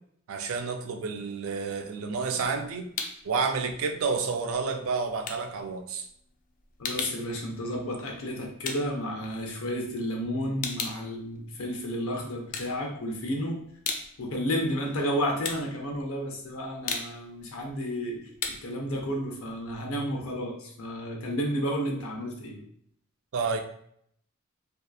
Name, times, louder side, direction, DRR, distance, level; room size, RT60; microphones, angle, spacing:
voice 1, 0.3-2.9 3.2-6.1 23.3-23.6, right 4 dB, 75° right, 5 dB, 0.4 m, -30 dB
sound 1, 2.1-3.3 3.7-9.9 10.2-12.0 12.4-13.3 13.6-20.3, left 4 dB, 40° left, 0.3 m, -38 dB
voice 2, 6.8-13.6 14.2-18.2 18.5-22.6, equal, 85° left, 1 dB, 0.6 m, -32 dB
2.7 x 2.3 x 2.2 m, 0.69 s
head